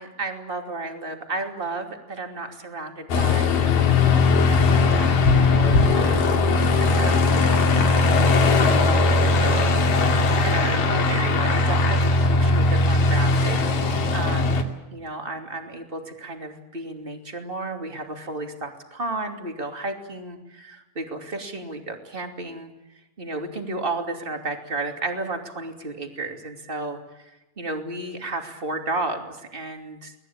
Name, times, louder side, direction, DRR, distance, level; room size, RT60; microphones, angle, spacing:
voice 1, 0.0-3.7 4.4-6.2 6.8-9.9 10.4-14.7 14.9-22.7 23.2-30.1, right 2 dB, 15° right, 4 dB, 1.9 m, -33 dB
Aircraft, 3.1-14.6, left 3 dB, 55° left, 3.8 m, -19 dB
24.0 x 19.5 x 8.9 m, 0.99 s
omnidirectional pair, 5.1 m